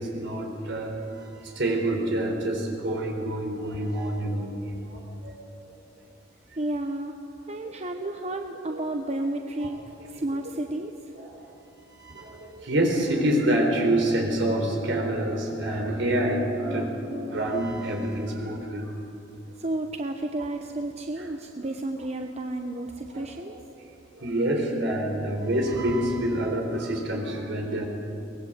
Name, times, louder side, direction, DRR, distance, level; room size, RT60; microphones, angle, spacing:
voice 1, 0.0-4.6 4.9-5.5 7.6-7.7 8.7-8.8 11.1-11.4 12.0-18.9 20.4-20.5 21.2-21.3 23.1-23.3 24.2-27.8, right 1 dB, 65° right, 2 dB, 4.3 m, -27 dB
voice 2, 6.6-7.1 7.5-11.0 19.6-23.6, right 1 dB, 35° right, 4 dB, 0.9 m, -32 dB
23.5 x 19.5 x 8.0 m, 2.8 s
head